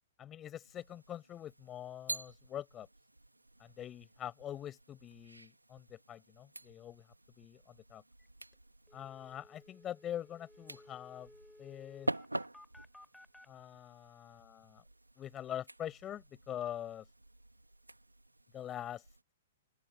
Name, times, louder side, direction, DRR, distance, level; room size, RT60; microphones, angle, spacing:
voice 1, 0.2-2.9 3.6-7.1 7.4-8.0 8.9-11.3 11.6-12.1 13.5-14.8 15.2-17.1 18.5-19.0, left 11 dB, 20° left, 6.2 m, -44 dB
sound 1, 0.6-19.2, right 1 dB, 85° right, 3.8 m, -47 dB
sound 2, 8.2-8.3 8.5-8.6 8.9-13.5, left 1 dB, 5° left, 5.6 m, -59 dB
open air
figure-of-eight pair, 110°, 0 cm